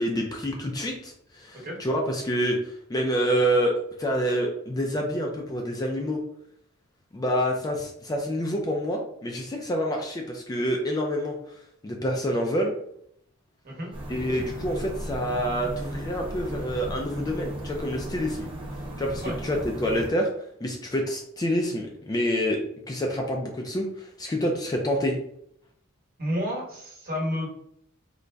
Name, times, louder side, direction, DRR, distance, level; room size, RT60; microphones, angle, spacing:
voice 1, 0.0-6.2 7.1-11.4 11.8-12.7 14.1-18.5 19.0-20.3 20.6-25.2, equal, 15° left, 1 dB, 0.4 m, -27 dB
sound 1, 13.9-20.1, right 1 dB, 25° right, 0.8 m, -36 dB
voice 2, 26.2-27.5, equal, 40° right, -3 dB, 1.2 m, -30 dB
3.8 x 2.1 x 3.3 m, 0.71 s
head